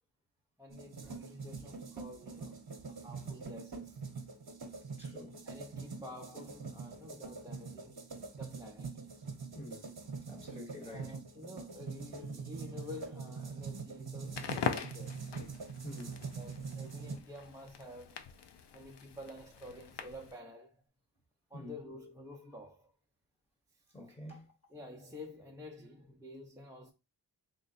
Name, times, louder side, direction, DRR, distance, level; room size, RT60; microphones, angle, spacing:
voice 1, 0.6-4.0 5.4-9.0 10.9-15.3 16.4-18.3 18.7-20.8 21.5-22.9 23.7-23.8 24.7-26.9, left 1 dB, 10° right, 0.5 m, -50 dB
sound 1, 0.7-17.2, right 4 dB, 55° right, 0.9 m, -44 dB
voice 2, 5.0-5.4 9.5-9.9 10.3-11.1 15.8-16.2 21.5-21.8 23.9-24.5, left 1 dB, 15° left, 1.1 m, -47 dB
Crackle, 14.2-20.4, left 7 dB, 70° left, 0.6 m, -42 dB
3.6 x 2.1 x 4.0 m
wide cardioid pair, 80°, 44 cm